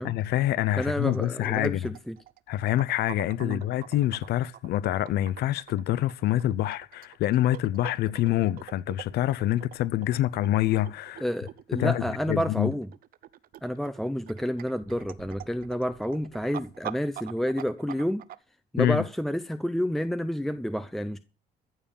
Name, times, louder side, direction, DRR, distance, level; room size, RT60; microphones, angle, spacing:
voice 1, 0.0-1.8 2.5-11.2 11.7-12.7 18.8-19.0, left 13 dB, 70° left, 0.7 m, -26 dB
voice 2, 0.8-2.2 3.4-3.6 11.2-12.9 13.6-18.2 18.7-21.2, equal, ahead, 0.7 m, -29 dB
sound 1, 0.8-18.3, right 12 dB, 60° right, 0.8 m, -45 dB
14.5 x 7.2 x 7.0 m
cardioid pair, 110°, 17 cm